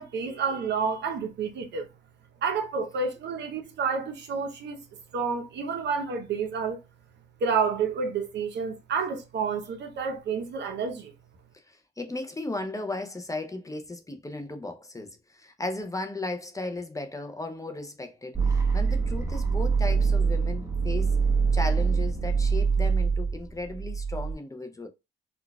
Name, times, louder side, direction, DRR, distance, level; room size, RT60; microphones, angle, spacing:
voice 1, 0.0-1.9 2.4-4.8 5.1-6.8 7.4-11.1, right 5 dB, 60° right, 0.8 m, -29 dB
voice 2, 11.5-21.2 21.5-24.9, left 2 dB, 15° left, 0.5 m, -36 dB
sound 1, 18.3-24.3, right 5 dB, 15° right, 1.0 m, -24 dB
3.9 x 2.3 x 2.2 m
cardioid pair, 90°, 20 cm